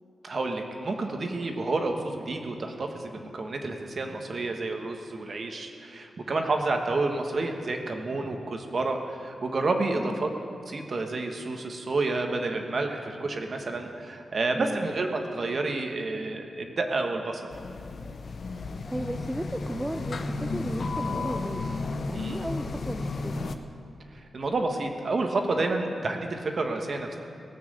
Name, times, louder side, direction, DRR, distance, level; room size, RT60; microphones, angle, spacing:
voice 1, 0.2-10.3 10.7-17.5 22.1-22.4 24.1-27.1, right 3 dB, 45° right, 4 dB, 1.3 m, -30 dB
voice 2, 10.0-10.3 14.5-14.9 18.6-21.7 22.1-23.5, right 1 dB, 10° right, 6 dB, 0.5 m, -35 dB
sound 1, 17.5-23.6, left 3 dB, 55° left, 0.7 m, -33 dB
18.0 x 6.1 x 7.8 m, 2.5 s
wide cardioid pair, 120°, 0 cm